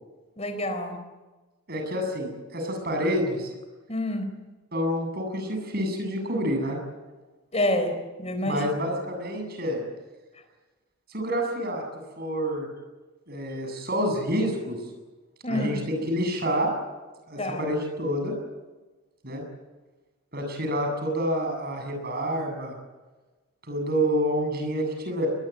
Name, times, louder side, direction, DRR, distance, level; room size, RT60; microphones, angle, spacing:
voice 1, 0.4-1.0 3.9-4.3 7.5-8.7 15.4-15.8 17.4-17.7, left 1 dB, 30° left, 8 dB, 4.3 m, -28 dB
voice 2, 1.7-3.5 4.7-6.8 8.5-9.8 11.1-11.8 12.2-12.7 13.3-14.8 15.5-16.7 17.3-18.3 19.2-19.4 20.3-22.8 23.6-25.3, equal, 45° right, 3 dB, 7.9 m, -28 dB
22.0 x 21.5 x 9.5 m, 1.2 s
head